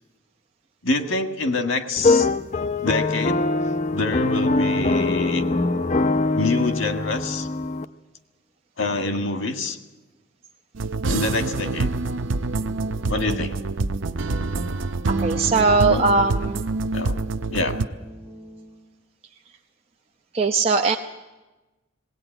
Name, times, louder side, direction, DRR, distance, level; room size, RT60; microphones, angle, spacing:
voice 1, 0.8-2.3 2.8-3.4 3.9-5.4 6.3-7.5 8.8-9.8 11.1-11.9 13.1-13.5 15.9-16.1 16.9-17.2 17.5-17.8, left 3 dB, 90° left, 7 dB, 1.7 m, -26 dB
sound 1, 2.0-7.9, left 3 dB, 35° left, 0.6 m, -22 dB
sound 2, 10.7-17.9, right 3 dB, 80° right, 0.7 m, -26 dB
sound 3, 11.8-19.1, equal, 10° right, 2.3 m, -46 dB
voice 2, 15.1-16.6 20.3-21.0, right 4 dB, 30° right, 2 dB, 0.7 m, -20 dB
19.5 x 17.5 x 9.0 m, 1.1 s
head